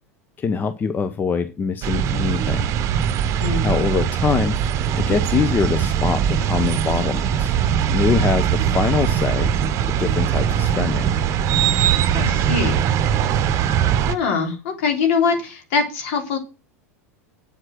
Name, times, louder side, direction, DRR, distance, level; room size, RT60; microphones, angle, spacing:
voice 1, 0.4-2.7 3.3-3.4 3.6-4.6 5.0-7.5 7.9-9.5 9.9-11.1, left 5 dB, 25° left, 11 dB, 0.9 m, -23 dB
sound 1, 1.8-14.2, right 9 dB, 40° right, 0.9 m, -21 dB
voice 2, 3.4-3.8 12.1-12.8 14.1-16.4, left 5 dB, 55° left, 4 dB, 3.6 m, -23 dB
9.0 x 7.9 x 6.4 m, 0.31 s
figure-of-eight pair, 80°, 8 cm